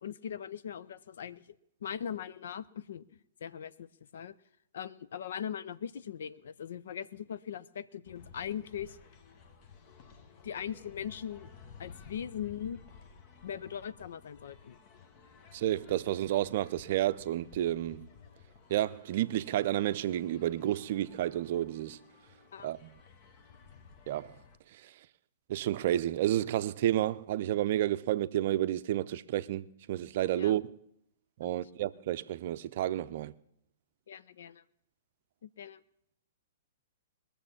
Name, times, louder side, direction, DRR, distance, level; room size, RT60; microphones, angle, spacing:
voice 1, 0.0-1.6 1.8-3.9 4.1-4.4 4.7-9.0 10.4-11.5 11.8-12.8 13.4-14.8 22.5-22.7 30.3-30.6 31.4-31.6 34.1-34.6 35.4-35.8, left 8 dB, 65° left, 0.5 m, -40 dB
sound 1, 8.1-24.6, left 5 dB, 40° left, 1.2 m, -55 dB
voice 2, 15.5-18.1 18.7-22.0 22.6-22.9 24.1-24.3 25.5-30.6 31.4-33.3, right 13 dB, 55° right, 0.5 m, -30 dB
21.0 x 7.0 x 7.2 m
figure-of-eight pair, 115°, 0 cm